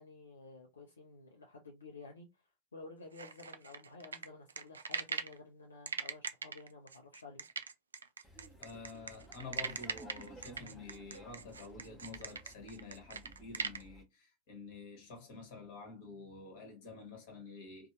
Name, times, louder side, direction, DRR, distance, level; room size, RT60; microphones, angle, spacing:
voice 1, 0.0-7.4, left 3 dB, 75° left, 0.6 m, -53 dB
sound 1, 3.2-5.4 5.9-13.8, right 5 dB, 70° right, 0.3 m, -40 dB
Laughter, 8.2-14.0, right 2 dB, ahead, 0.9 m, -57 dB
voice 2, 8.6-17.9, left 3 dB, 50° left, 1.2 m, -49 dB
2.7 x 2.2 x 3.0 m
figure-of-eight pair, 90°, 0 cm